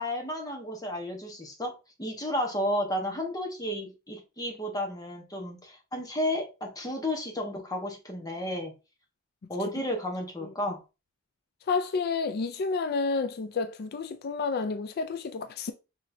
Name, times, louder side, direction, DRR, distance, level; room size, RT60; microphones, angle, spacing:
voice 1, 0.0-8.7 9.5-10.8, left 1 dB, 15° left, 1.1 m, -32 dB
voice 2, 11.7-15.7, left 4 dB, 45° left, 0.4 m, -30 dB
6.1 x 3.2 x 2.7 m
head